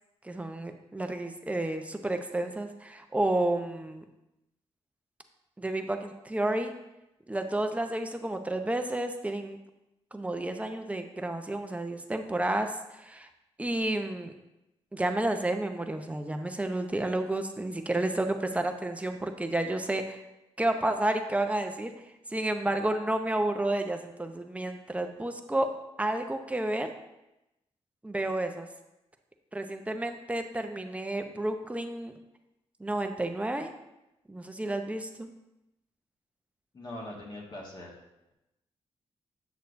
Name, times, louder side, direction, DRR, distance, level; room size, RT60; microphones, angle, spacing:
voice 1, 0.2-4.0 5.6-6.7 7.3-9.6 10.1-13.3 13.6-14.3 14.9-20.2 20.6-21.9 22.3-25.7 26.0-26.9 28.0-28.7 29.5-32.1 32.8-33.7 34.3-35.3, right 1 dB, 10° right, 6 dB, 0.7 m, -31 dB
voice 2, 36.7-38.0, left 1 dB, 40° left, -3 dB, 1.6 m, -41 dB
8.2 x 6.4 x 2.6 m, 0.93 s
cardioid pair, 75°, 11 cm